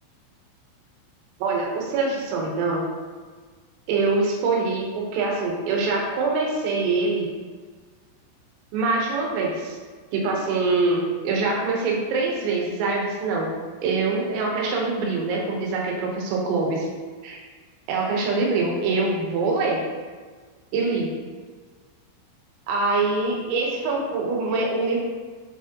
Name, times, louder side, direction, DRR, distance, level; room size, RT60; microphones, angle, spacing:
voice 1, 1.4-2.9 3.9-7.3 8.7-9.8 10.1-13.5 13.8-16.9 17.2-17.4 17.9-19.8 20.7-21.1 22.7-25.0, right 3 dB, 90° right, -1 dB, 3.8 m, -24 dB
7.5 x 5.1 x 2.9 m, 1.5 s
omnidirectional pair, 5.8 m